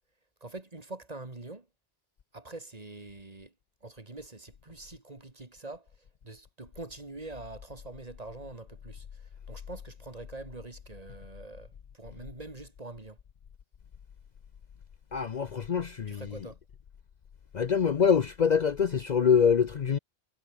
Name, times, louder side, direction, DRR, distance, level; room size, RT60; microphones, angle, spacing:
voice 1, 0.4-1.7 2.3-3.5 3.8-5.9 6.2-13.2 16.1-16.6, right 2 dB, 40° right, 2.3 m, -44 dB
voice 2, 15.1-16.2 17.5-20.0, left 7 dB, 50° left, 0.7 m, -25 dB
omnidirectional pair, 1.1 m